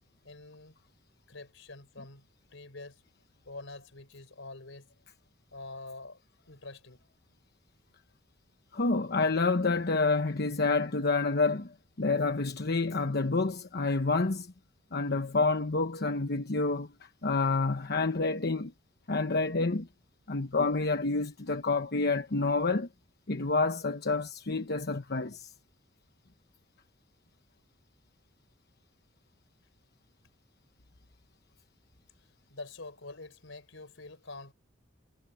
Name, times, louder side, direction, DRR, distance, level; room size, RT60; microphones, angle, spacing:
voice 1, 0.2-0.8 1.3-3.0 3.4-4.9 5.5-6.2 6.5-7.0 32.5-34.5, left 2 dB, 75° left, 4.3 m, -46 dB
voice 2, 8.7-14.5 14.9-16.9 17.2-18.7 19.1-19.9 20.3-22.9 23.3-25.5, left 3 dB, 55° left, 1.1 m, -28 dB
head